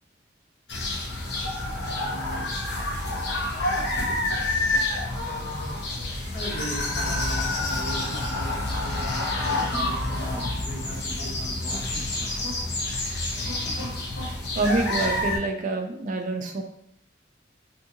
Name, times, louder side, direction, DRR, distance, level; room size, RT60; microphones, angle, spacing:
sound 1, 0.7-15.4, left 2 dB, 65° left, 0.6 m, -28 dB
voice 1, 2.0-2.5 6.3-12.3, right 1 dB, 45° left, -3 dB, 0.9 m, -39 dB
voice 2, 14.5-16.6, right 2 dB, 45° right, 4 dB, 0.4 m, -28 dB
2.7 x 2.7 x 2.5 m, 0.73 s
head